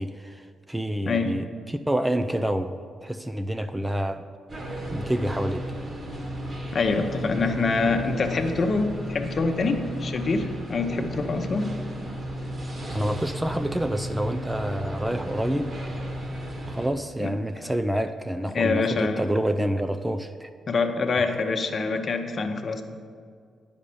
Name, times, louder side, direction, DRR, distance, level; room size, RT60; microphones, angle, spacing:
voice 1, 0.0-4.3 4.9-5.7 12.9-15.8 16.7-20.5, right 1 dB, 10° right, 8 dB, 0.4 m, -28 dB
sound 1, 4.5-16.9, equal, 40° right, 1.9 m, -34 dB
voice 2, 6.7-11.7 17.2-17.3 17.6-17.7 18.5-19.3 20.7-22.8, left 4 dB, 45° left, 5 dB, 0.9 m, -25 dB
9.7 x 5.2 x 6.9 m, 2.1 s
supercardioid pair, 65°, 0 cm